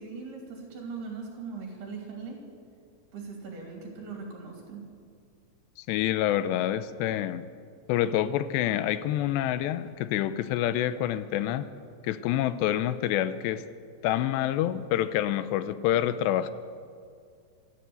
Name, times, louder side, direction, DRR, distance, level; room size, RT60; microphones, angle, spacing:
voice 1, 0.0-2.4 3.1-4.8, right 4 dB, 65° right, 1 dB, 4.8 m, -40 dB
voice 2, 5.8-7.5 7.9-11.7 12.0-13.6 14.0-16.5, left 12 dB, 85° left, 13 dB, 2.9 m, -27 dB
27.0 x 12.5 x 8.0 m, 2.3 s
omnidirectional pair, 5.0 m